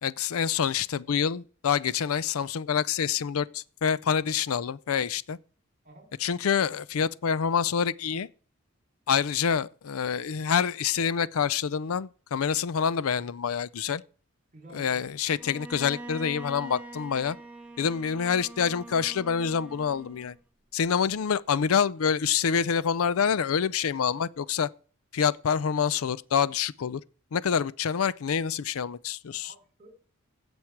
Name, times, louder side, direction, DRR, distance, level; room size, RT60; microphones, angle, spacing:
voice 1, 0.0-5.4 6.2-8.3 9.1-14.0 14.7-17.4 17.8-20.3 20.7-24.7 25.1-27.0 27.3-29.5, left 7 dB, 85° left, 0.5 m, -27 dB
voice 2, 14.5-15.0 27.5-27.6 29.4-29.9, right 1 dB, 40° right, 3.2 m, -50 dB
Bowed string instrument, 15.4-20.4, right 2 dB, 5° right, 1.3 m, -44 dB
16.0 x 6.2 x 4.6 m
head